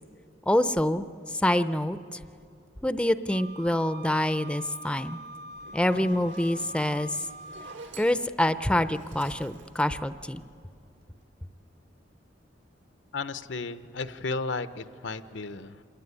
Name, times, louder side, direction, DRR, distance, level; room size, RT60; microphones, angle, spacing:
voice 1, 0.5-2.2 2.8-5.2 5.7-7.2 8.0-10.4, left 1 dB, 5° left, 11 dB, 0.6 m, -26 dB
Wind instrument woodwind instrument, 3.3-7.8, right 1 dB, 55° right, 0.5 m, -44 dB
Zipper (clothing), 5.5-10.8, right 2 dB, 75° right, 2.5 m, -48 dB
voice 2, 13.1-15.8, left 3 dB, 75° left, 12 dB, 0.9 m, -34 dB
27.0 x 21.0 x 9.7 m, 2.6 s
head